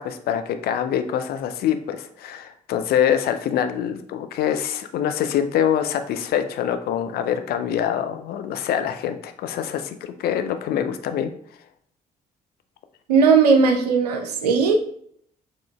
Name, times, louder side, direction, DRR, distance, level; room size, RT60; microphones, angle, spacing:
voice 1, 0.0-11.3, left 9 dB, 50° left, 8 dB, 0.5 m, -25 dB
voice 2, 13.1-14.8, right 5 dB, 80° right, 4 dB, 0.5 m, -17 dB
6.1 x 3.0 x 2.3 m, 0.65 s
figure-of-eight pair, 40°, 20 cm